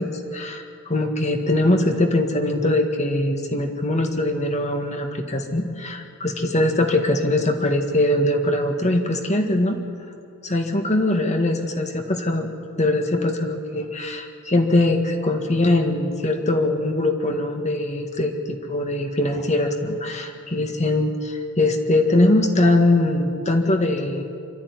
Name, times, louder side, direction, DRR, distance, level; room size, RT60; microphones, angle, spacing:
voice 1, 0.0-9.8 10.4-12.5 12.8-24.3, left 1 dB, 30° left, 4 dB, 1.8 m, -22 dB
26.0 x 13.0 x 9.8 m, 2.5 s
head